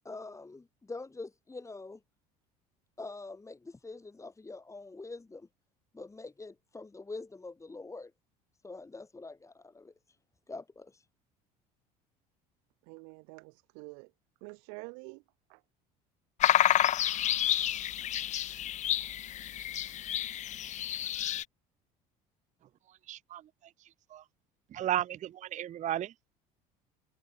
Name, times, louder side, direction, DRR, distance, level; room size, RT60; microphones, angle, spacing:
voice 1, 0.0-2.0 3.0-5.5 5.9-8.1 8.6-9.9 10.5-11.1, left 3 dB, 15° left, 2.5 m, -45 dB
voice 2, 12.8-14.1 14.4-15.2 15.5-15.6, right 40 dB or more, 75° right, 1.3 m, -47 dB
sound 1, 16.4-21.4, left 12 dB, 40° left, 0.5 m, -29 dB
voice 3, 23.1-23.4 24.1-24.2 24.7-26.1, right 12 dB, 40° right, 0.6 m, -33 dB
hypercardioid pair, 75°, 18 cm